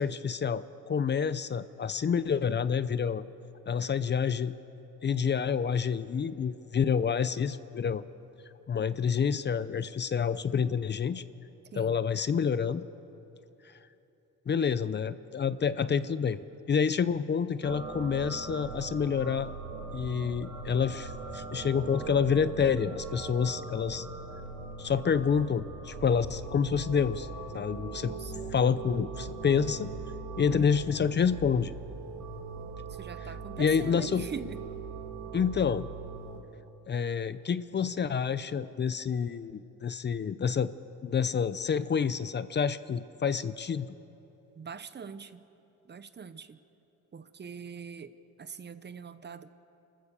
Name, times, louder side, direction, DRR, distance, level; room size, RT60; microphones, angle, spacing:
voice 1, 0.0-3.2 3.7-4.5 5.0-8.0 8.7-11.2 11.7-12.9 14.5-16.4 16.7-19.5 19.9-24.1 24.8-27.3 27.5-28.1 28.4-29.9 30.4-31.7 33.6-34.3 35.3-35.9 36.9-40.7 41.0-43.9, left 6 dB, 35° left, 14 dB, 0.6 m, -28 dB
voice 2, 11.7-12.0 28.0-28.4 30.5-30.7 32.9-34.6 44.6-45.4 45.9-46.6 47.1-48.1 48.4-49.5, right 6 dB, 35° right, 12 dB, 0.9 m, -43 dB
sound 1, 17.6-36.4, right 4 dB, 80° right, 2.6 m, -40 dB
27.0 x 14.0 x 6.9 m, 3.0 s
cardioid pair, 90°, 30 cm